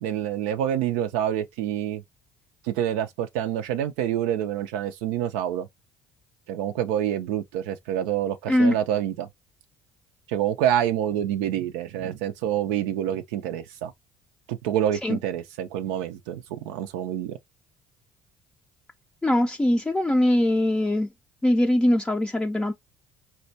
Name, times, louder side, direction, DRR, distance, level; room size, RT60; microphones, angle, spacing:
voice 1, 0.0-2.0 2.7-5.7 6.5-9.3 10.3-13.9 14.5-17.4, right 10 dB, 85° right, 0.4 m, -27 dB
voice 2, 19.2-21.1 21.4-22.7, left 1 dB, 10° left, 0.4 m, -21 dB
4.2 x 2.2 x 2.6 m
supercardioid pair, 85°, 7 cm